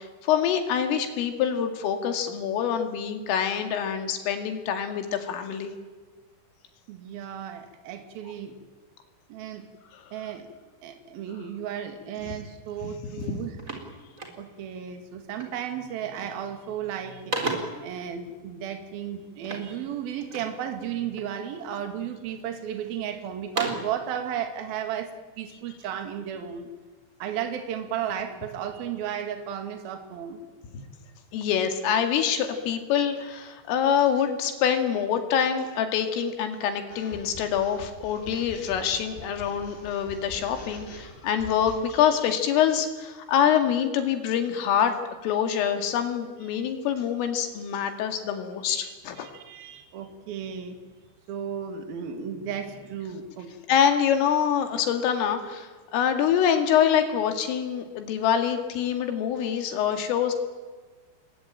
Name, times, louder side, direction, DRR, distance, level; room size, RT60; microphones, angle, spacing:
voice 1, 0.0-5.7 9.9-10.1 13.0-13.4 31.3-45.0 45.2-49.3 53.7-60.3, left 8 dB, 80° left, 6 dB, 4.8 m, -25 dB
voice 2, 6.9-8.5 9.3-9.7 10.1-10.5 10.8-13.6 14.4-25.1 25.4-26.7 27.2-30.4 46.5-46.7 48.7-50.8 51.3-53.5, right 9 dB, 55° right, 6 dB, 3.6 m, -34 dB
sound 1, 12.7-12.9 13.2-14.7 15.4-15.7 16.0-16.5 16.9-17.9 19.4-20.6 21.1-21.8 22.3-22.9 23.3-24.0, right 2 dB, 20° right, 3.3 m, -35 dB
sound 2, 36.9-42.0, left 3 dB, 50° left, 7.0 m, -44 dB
28.5 x 22.0 x 9.1 m, 1.4 s
omnidirectional pair, 5.8 m